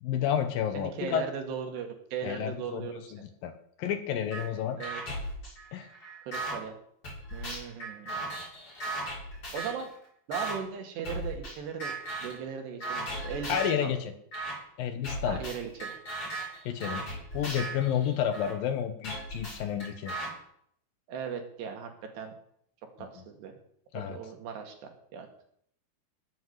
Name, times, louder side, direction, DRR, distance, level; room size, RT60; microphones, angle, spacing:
voice 1, 0.0-1.2 2.2-3.5 3.8-4.8 5.7-5.9 13.5-14.1 14.8-15.4 16.7-17.0 17.3-20.1 23.9-24.2, left 9 dB, 70° left, 8 dB, 2.6 m, -30 dB
voice 2, 0.7-3.2 4.8-5.0 6.2-6.8 7.3-8.2 9.5-9.9 10.3-11.9 12.2-13.9 15.3-15.9 17.0-17.1 21.1-22.3 23.0-23.6 23.9-25.5, right 7 dB, 80° right, 4 dB, 4.3 m, -38 dB
sound 1, 4.3-4.4 4.8-6.6 7.0-9.9 10.3-10.6 11.0-11.5 11.8-12.4 12.8-13.8 14.3-14.5 15.0-18.5 19.0-20.3, right 1 dB, 30° left, 8.3 m, -37 dB
19.5 x 7.8 x 8.1 m, 0.69 s
omnidirectional pair, 4.8 m